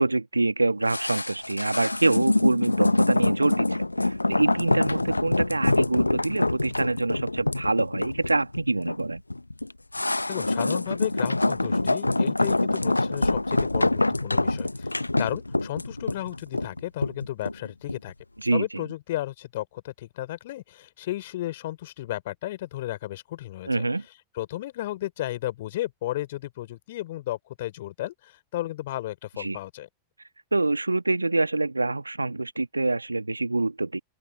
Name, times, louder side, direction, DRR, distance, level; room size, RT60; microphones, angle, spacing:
voice 1, 0.0-9.2 18.4-18.8 23.7-24.0 29.4-29.6 30.5-34.0, right 2 dB, 85° right, 1.8 m, -25 dB
sound 1, 0.9-18.1 18.4-18.5, left 2 dB, 85° left, 1.1 m, -25 dB
voice 2, 10.3-18.1 18.5-23.8 24.4-29.9, left 15 dB, 55° left, 3.9 m, -34 dB
open air
figure-of-eight pair, 90°, 0 cm